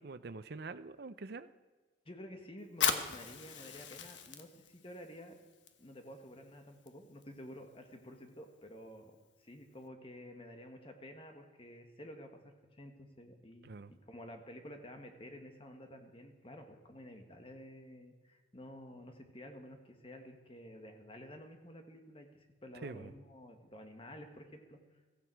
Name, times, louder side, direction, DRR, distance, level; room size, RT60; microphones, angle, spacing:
voice 1, 0.0-1.5 13.6-13.9 22.8-23.1, right 3 dB, 60° right, 12 dB, 0.6 m, -45 dB
voice 2, 2.0-5.4 5.8-9.1 9.4-24.8, equal, 30° left, 4 dB, 1.7 m, -51 dB
Fire, 2.7-9.9, left 7 dB, 80° left, 1.1 m, -41 dB
16.0 x 14.5 x 4.7 m, 1.4 s
head